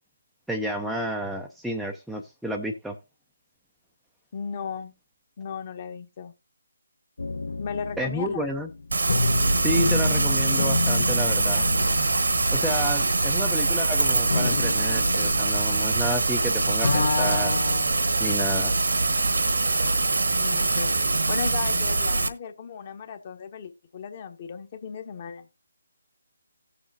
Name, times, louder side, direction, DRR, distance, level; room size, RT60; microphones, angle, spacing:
voice 1, 0.5-3.0 8.0-8.7 9.6-11.7 12.5-17.6 18.2-18.7, equal, ahead, 0.5 m, -31 dB
voice 2, 4.3-4.9 5.4-6.3 7.6-8.5 20.3-25.5, left 6 dB, 35° left, 1.2 m, -36 dB
sound 1, 7.2-16.4 16.7-18.2, left 3 dB, 60° left, 1.0 m, -30 dB
Rain, 8.9-22.3, right 3 dB, 65° right, 1.2 m, -23 dB
17.0 x 7.1 x 2.7 m
figure-of-eight pair, 150°, 0 cm